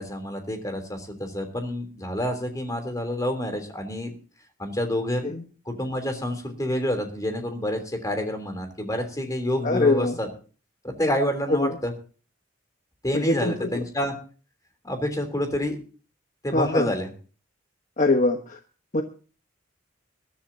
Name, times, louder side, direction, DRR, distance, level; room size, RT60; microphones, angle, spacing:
voice 1, 0.0-4.1 4.6-5.3 5.6-10.3 10.8-11.9 13.0-14.1 14.8-15.8 16.4-17.1, left 1 dB, 15° left, 5 dB, 3.3 m, -28 dB
voice 2, 9.6-10.2 11.5-11.8 13.1-13.8 16.5-16.9 18.0-18.6 18.9-19.0, left 2 dB, 40° left, 4 dB, 1.2 m, -23 dB
22.0 x 13.0 x 2.8 m, 0.38 s
head